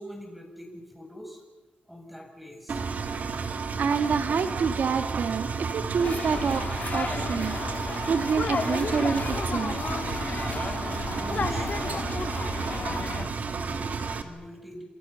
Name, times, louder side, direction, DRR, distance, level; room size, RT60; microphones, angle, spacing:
voice 1, 0.0-1.4 1.9-2.8 11.1-12.1 12.5-14.8, equal, 5° right, 3 dB, 7.1 m, -44 dB
Engine, 2.7-14.2, right 5 dB, 60° right, 2.3 m, -32 dB
voice 2, 3.8-6.7 6.9-9.8 11.3-11.5 12.1-12.3 12.6-12.7, right 6 dB, 80° right, 8 dB, 1.7 m, -28 dB
sound 1, 6.0-13.3, left 4 dB, 50° left, 2.0 m, -33 dB
28.5 x 27.0 x 7.0 m, 1.2 s
wide cardioid pair, 110°, 3 cm